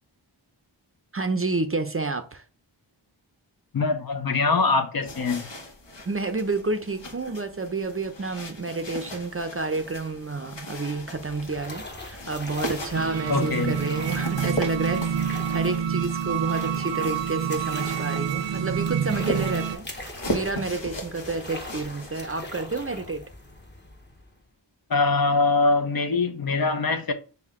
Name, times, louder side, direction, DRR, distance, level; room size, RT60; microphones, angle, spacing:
voice 1, 1.1-2.4 6.0-23.2, right 3 dB, 30° right, 0.5 m, -30 dB
voice 2, 3.7-5.5 13.3-13.8 24.9-27.1, left 3 dB, 50° left, 0.6 m, -23 dB
sound 1, 5.0-22.2, equal, 70° left, 1.1 m, -38 dB
sound 2, 11.0-24.5, left 1 dB, 25° left, 0.9 m, -42 dB
sound 3, 12.9-19.8, right 8 dB, 70° right, 0.6 m, -27 dB
5.6 x 2.2 x 3.6 m
wide cardioid pair, 60°, 45 cm